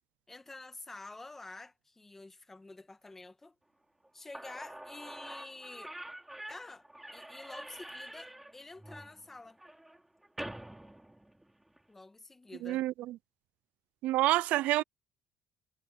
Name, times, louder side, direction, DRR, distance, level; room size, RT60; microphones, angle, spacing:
voice 1, 0.3-3.5 4.1-6.0 6.5-6.9 7.1-9.6 11.9-12.8, left 2 dB, 10° left, 1.6 m, -48 dB
Slam / Squeak, 4.0-4.1 4.3-11.8, right 1 dB, 5° right, 4.0 m, -47 dB
voice 2, 12.6-13.2 14.0-14.8, right 16 dB, 75° right, 0.5 m, -28 dB
cardioid pair, 150°, 2 cm